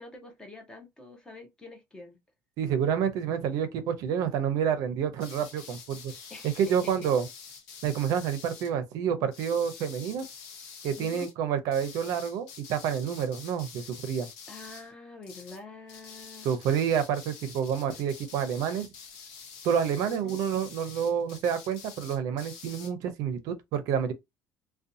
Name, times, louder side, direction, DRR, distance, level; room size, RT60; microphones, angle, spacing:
voice 1, 0.0-2.2 6.3-7.1 10.9-11.3 14.5-16.5 20.1-20.4, left 3 dB, 10° left, 0.5 m, -46 dB
voice 2, 2.6-6.1 6.4-7.3 7.8-10.3 10.8-14.3 16.4-18.9 19.6-24.1, right 8 dB, 60° right, 0.5 m, -28 dB
sound 1, 5.2-8.7 9.3-11.3 11.7-14.9 15.2-15.6 15.9-22.9, left 6 dB, 85° left, 0.9 m, -47 dB
2.5 x 2.2 x 2.6 m
cardioid pair, 175°, 7 cm